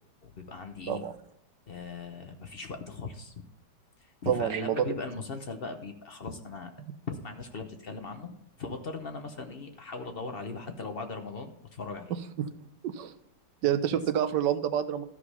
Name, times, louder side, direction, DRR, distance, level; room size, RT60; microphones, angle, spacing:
voice 1, 0.2-1.0 1.7-3.5 4.2-6.7 7.1-12.1 13.9-14.0, left 4 dB, 45° left, 5 dB, 0.7 m, -39 dB
voice 2, 4.3-4.9 12.4-12.5 12.8-13.1 13.6-15.0, right 10 dB, 80° right, 10 dB, 1.4 m, -28 dB
13.0 x 4.9 x 5.5 m, 0.77 s
omnidirectional pair, 1.9 m